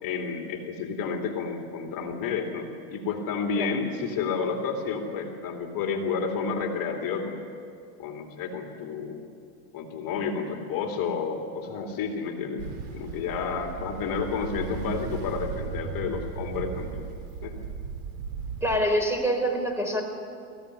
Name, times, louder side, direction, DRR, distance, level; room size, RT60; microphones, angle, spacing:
voice 1, 0.0-7.4 8.0-9.2 9.7-17.1 17.4-17.6, left 5 dB, 40° left, 2 dB, 2.6 m, -31 dB
Ocean, 12.6-18.8, right 5 dB, 60° right, 3.5 m, -36 dB
voice 2, 18.6-20.0, equal, 5° right, 3 dB, 3.9 m, -25 dB
22.5 x 15.5 x 9.7 m, 2.4 s
supercardioid pair, 110°, 50 cm